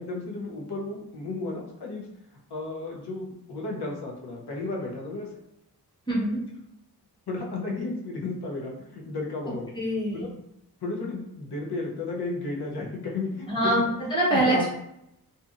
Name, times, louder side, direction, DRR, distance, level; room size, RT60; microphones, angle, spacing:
voice 1, 0.0-2.1 2.5-5.3 7.3-9.7 10.1-10.3 10.8-13.8 14.3-14.7, left 3 dB, 90° left, -2 dB, 0.7 m, -33 dB
voice 2, 6.1-6.4 9.7-10.2 13.5-14.7, right 1 dB, 10° left, -7 dB, 1.3 m, -24 dB
2.7 x 2.5 x 2.4 m, 0.79 s
wide cardioid pair, 95°, 38 cm